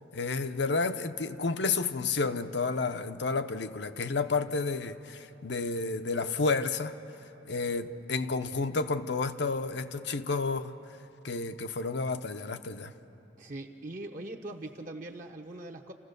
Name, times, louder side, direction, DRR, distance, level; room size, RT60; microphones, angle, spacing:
voice 1, 0.1-6.9 7.4-10.7 11.2-12.9, left 4 dB, 65° left, 0.8 m, -31 dB
voice 2, 13.4-15.9, right 2 dB, 45° right, 1.0 m, -41 dB
29.5 x 15.5 x 6.7 m
head